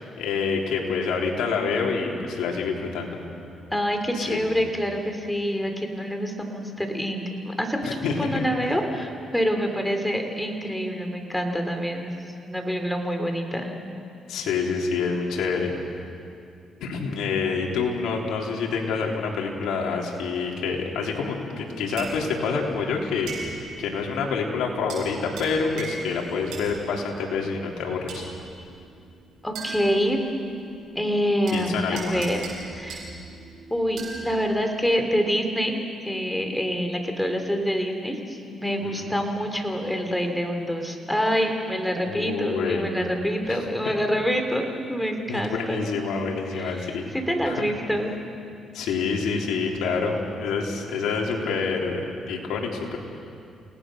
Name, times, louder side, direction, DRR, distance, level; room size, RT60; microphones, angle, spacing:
voice 1, 0.0-3.2 4.1-4.4 7.8-8.3 14.3-15.7 16.8-28.3 31.5-32.2 38.8-39.2 42.0-42.8 43.4-43.6 43.9-44.0 45.3-47.1 47.4-47.7 48.7-52.0 52.3-53.0, left 5 dB, 85° left, 0 dB, 3.5 m, -27 dB
voice 2, 3.7-12.1 12.5-13.7 29.4-30.2 30.9-33.1 33.7-35.8 36.0-45.8 46.6-48.1, equal, 5° left, 4 dB, 3.3 m, -26 dB
sound 1, 21.7-34.3, right 4 dB, 80° right, 7.7 m, -40 dB
29.5 x 18.5 x 6.4 m, 2.5 s
cardioid pair, 90°, 0 cm